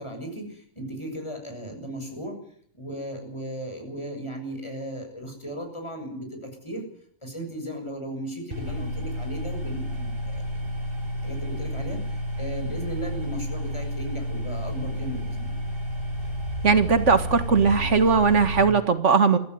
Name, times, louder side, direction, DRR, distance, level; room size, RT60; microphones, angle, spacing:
voice 1, 0.0-2.4 2.7-6.8 7.2-10.7 11.2-15.6, right 1 dB, 25° left, 4 dB, 6.9 m, -36 dB
sound 1, 8.5-18.6, equal, 50° right, 7.4 m, -31 dB
voice 2, 16.6-19.4, right 5 dB, 85° right, 10 dB, 2.0 m, -19 dB
24.0 x 15.5 x 9.4 m, 0.63 s
omnidirectional pair, 1.2 m